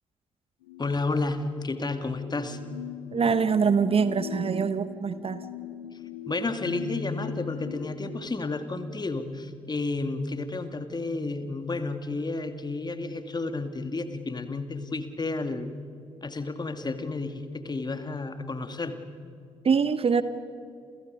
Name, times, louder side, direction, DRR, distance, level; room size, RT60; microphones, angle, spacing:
sound 1, 0.7-8.3, left 6 dB, 75° left, 1.8 m, -39 dB
voice 1, 0.8-2.6 6.3-15.7 16.2-19.0, left 3 dB, 25° left, 9 dB, 2.3 m, -31 dB
voice 2, 3.1-5.4 19.6-20.2, right 6 dB, 35° right, 13 dB, 1.2 m, -24 dB
30.0 x 28.5 x 5.3 m, 2.4 s
figure-of-eight pair, 40°, 16 cm